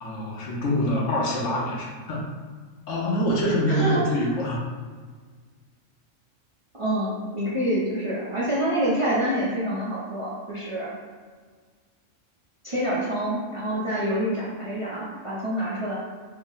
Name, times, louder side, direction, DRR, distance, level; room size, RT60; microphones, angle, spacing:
voice 1, 0.0-2.3 2.9-4.6, equal, 75° left, -3 dB, 1.1 m, -25 dB
voice 2, 3.7-4.3 6.8-10.9 12.6-15.9, right 1 dB, 35° right, -8 dB, 0.5 m, -27 dB
3.4 x 2.1 x 3.8 m, 1.5 s
omnidirectional pair, 1.3 m